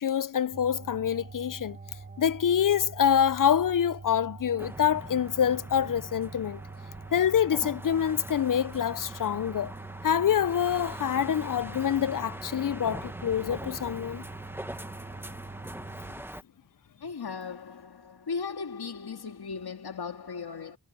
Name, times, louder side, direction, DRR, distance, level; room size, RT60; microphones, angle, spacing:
voice 1, 0.0-1.8 2.2-6.6 7.1-9.7 10.0-14.2, left 9 dB, 60° left, 0.6 m, -26 dB
sound 1, 0.5-16.2, right 4 dB, 25° right, 1.2 m, -44 dB
sound 2, 4.6-16.4, right 1 dB, 5° right, 1.1 m, -43 dB
voice 2, 17.0-20.8, left 5 dB, 90° left, 2.2 m, -37 dB
cardioid pair, 50°, 37 cm